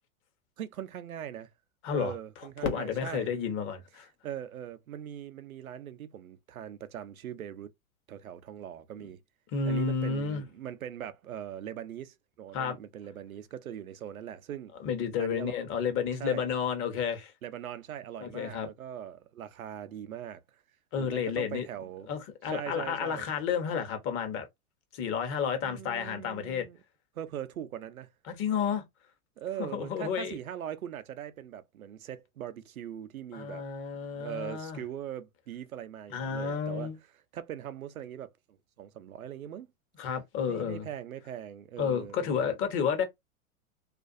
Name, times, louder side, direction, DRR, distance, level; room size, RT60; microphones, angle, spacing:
voice 1, 0.6-1.5 1.9-3.3 4.2-7.7 8.1-9.2 9.7-14.7 15.2-15.5 16.2-16.4 17.4-20.4 21.0-22.1 22.5-23.3 25.6-26.8 27.2-28.1 29.4-33.6 34.1-36.9 37.3-38.3 38.8-39.7 40.5-42.5, right 10 dB, 90° right, 0.5 m, -41 dB
voice 2, 1.8-2.1 2.6-4.1 9.0-9.1 9.5-10.4 12.5-12.8 14.8-17.3 18.2-18.7 20.9-21.7 22.1-24.5 24.9-26.7 28.3-28.8 29.6-30.4 33.3-34.8 36.1-36.9 40.0-40.9 41.8-43.0, left 7 dB, 30° left, 0.8 m, -31 dB
Fireworks, 2.6-5.4 6.1-6.2 6.8-7.3 9.2-9.3, left 6 dB, 85° left, 0.8 m, -43 dB
2.5 x 2.3 x 2.4 m
hypercardioid pair, 105°, 41 cm